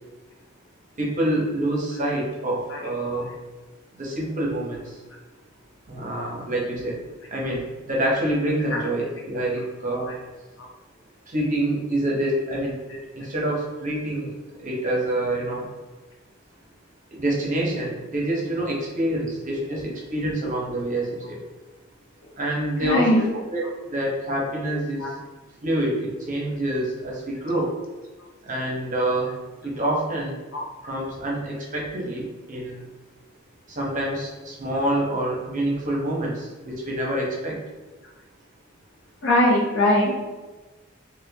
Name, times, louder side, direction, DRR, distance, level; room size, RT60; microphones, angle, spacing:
voice 1, 1.0-3.3 3.9-5.0 5.9-7.0 7.3-10.1 11.3-12.8 13.2-14.3 14.6-15.7 17.1-21.4 22.4-23.2 23.5-25.2 25.6-27.7 28.5-30.4 30.8-32.9 33.7-37.6, right 1 dB, 40° right, -2 dB, 0.7 m, -26 dB
voice 2, 22.8-23.3 24.7-25.1 30.5-30.6 39.2-40.2, left 1 dB, 65° left, -1 dB, 0.7 m, -21 dB
4.2 x 2.1 x 2.7 m, 1.2 s
head